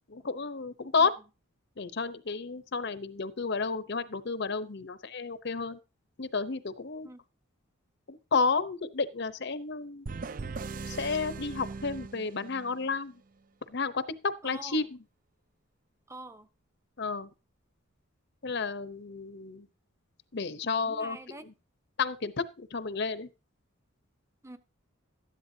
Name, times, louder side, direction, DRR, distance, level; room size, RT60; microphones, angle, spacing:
voice 1, 0.1-1.1 1.8-5.8 6.2-7.1 8.1-10.1 10.9-13.1 13.7-15.0 17.0-17.3 18.4-19.7 20.3-21.5 22.0-23.3, left 4 dB, 55° left, 13 dB, 0.8 m, -31 dB
sound 1, 10.1-12.9, right 4 dB, 40° right, 0.5 m, -39 dB
voice 2, 16.1-16.5 20.9-21.4 24.4-24.6, right 2 dB, 15° right, 10 dB, 0.9 m, -44 dB
13.5 x 11.0 x 2.8 m, 0.30 s
head